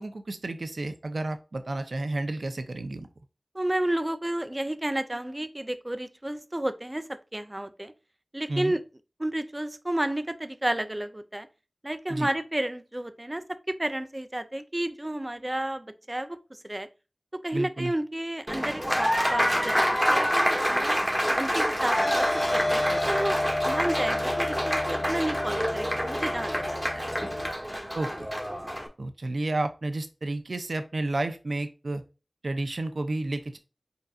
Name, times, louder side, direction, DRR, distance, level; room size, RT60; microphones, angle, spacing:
voice 1, 0.0-3.1 8.5-8.7 12.1-12.3 17.5-17.9 27.9-28.1 29.0-32.0 32.4-33.6, right 2 dB, 65° right, 0.6 m, -31 dB
voice 2, 3.5-7.9 8.3-8.8 9.2-11.5 11.8-16.4 16.6-16.9 17.4-21.0 21.4-27.2, right 1 dB, 25° right, 0.5 m, -31 dB
Applause, 18.5-28.9, equal, 5° right, 1.1 m, -27 dB
sound 1, 21.9-27.5, left 1 dB, 25° left, 0.4 m, -30 dB
5.4 x 3.9 x 2.4 m
wide cardioid pair, 60°, 0 cm